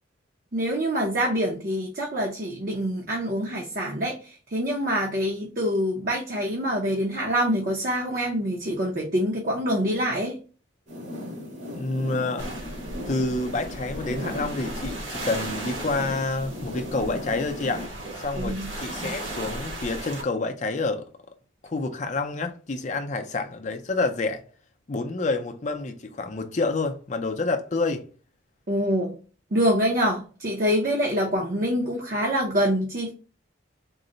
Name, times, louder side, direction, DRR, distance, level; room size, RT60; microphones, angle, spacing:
voice 1, 0.5-10.4 18.3-18.7 28.7-29.1 29.5-33.1, equal, 45° right, 0.7 m, -25 dB
sound 1, 10.9-17.9, left 1 dB, 90° right, 2.0 m, -37 dB
voice 2, 11.7-12.5 13.1-17.9 18.2-21.1 21.6-24.4 24.9-28.0, left 3 dB, 35° left, 0.5 m, -28 dB
sound 2, 12.4-20.2, right 1 dB, 75° right, 1.4 m, -36 dB
3.8 x 2.1 x 3.8 m
head